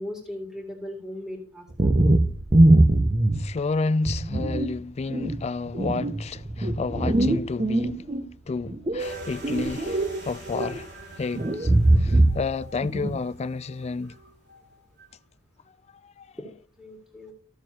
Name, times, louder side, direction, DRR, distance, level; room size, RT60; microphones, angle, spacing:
voice 1, 0.0-1.9 16.3-17.3, left 1 dB, ahead, 2.1 m, -38 dB
sound 1, 1.7-3.6 4.1-4.7 5.1-8.2 8.7-10.2 10.5-10.8 11.3-12.5 12.8-13.2, right 1 dB, 25° right, 0.7 m, -21 dB
voice 2, 3.4-8.0 8.5-10.9 11.2-11.7 12.0-14.2 16.0-16.3, left 4 dB, 30° left, 0.3 m, -30 dB
sound 2, 9.0-15.2, equal, 50° right, 2.6 m, -45 dB
14.5 x 6.7 x 2.9 m
head